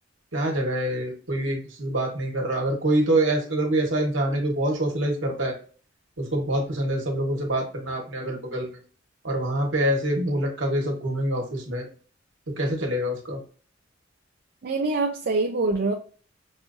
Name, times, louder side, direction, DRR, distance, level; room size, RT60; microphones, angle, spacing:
voice 1, 0.3-5.5 6.2-8.8 9.2-11.9 12.6-13.4, right 1 dB, 70° right, 1.4 m, -25 dB
voice 2, 14.6-15.9, right 3 dB, 55° right, 0.5 m, -24 dB
6.0 x 2.6 x 2.6 m
head